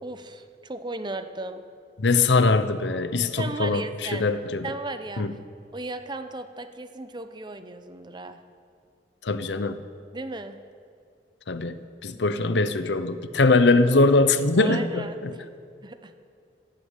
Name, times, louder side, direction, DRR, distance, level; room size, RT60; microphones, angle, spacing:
voice 1, 0.0-1.6 3.4-4.2 4.6-5.3 5.7-8.4 10.1-10.6 14.6-15.5 15.8-16.1, right 2 dB, 25° right, 9 dB, 0.8 m, -36 dB
voice 2, 2.0-4.7 5.2-5.3 9.2-9.8 11.5-15.3, left 3 dB, 80° left, 12 dB, 0.8 m, -22 dB
16.5 x 8.1 x 8.3 m, 2.4 s
head